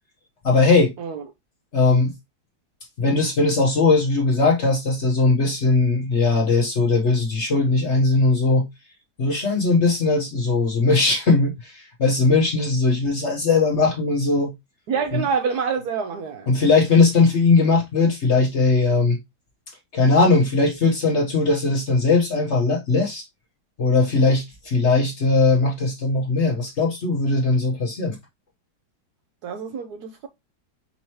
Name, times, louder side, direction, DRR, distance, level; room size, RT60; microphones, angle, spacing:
voice 1, 0.4-0.9 1.7-2.1 3.0-8.7 9.2-14.5 15.1-15.2 16.5-19.2 19.9-23.2 23.8-28.2, left 3 dB, 45° left, 1.1 m, -19 dB
voice 2, 14.9-16.5 29.4-30.3, right 6 dB, 70° right, 1.0 m, -26 dB
5.5 x 2.9 x 2.9 m
omnidirectional pair, 2.1 m